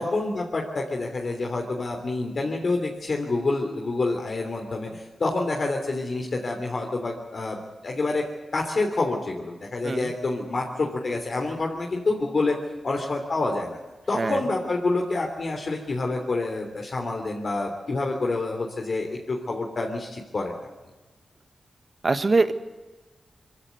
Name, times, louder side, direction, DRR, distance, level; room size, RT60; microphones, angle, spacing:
voice 1, 0.0-8.2 8.5-12.6 12.8-13.8 14.1-20.5, left 3 dB, 60° left, 0 dB, 3.1 m, -27 dB
voice 2, 22.0-22.5, right 3 dB, 50° right, 10 dB, 1.6 m, -23 dB
22.5 x 16.0 x 9.5 m, 1.2 s
supercardioid pair, 40°, 0 cm